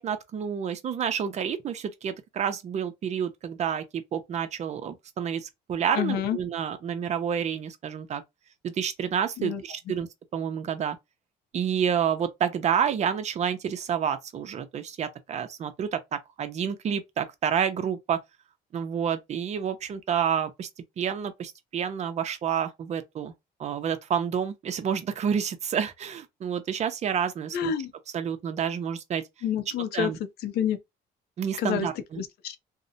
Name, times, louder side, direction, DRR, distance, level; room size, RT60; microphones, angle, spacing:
voice 1, 0.0-8.2 8.6-11.0 11.5-18.2 18.7-20.7 21.0-23.3 23.6-27.7 28.1-29.2 29.9-30.2 31.4-32.2, right 8 dB, 40° right, 0.5 m, -29 dB
voice 2, 5.9-6.4 9.4-9.6 27.5-27.9 29.4-30.1 30.4-30.8 31.6-31.9 32.2-32.6, left 9 dB, 70° left, 0.5 m, -28 dB
2.7 x 2.1 x 2.6 m
cardioid pair, 110°, 17 cm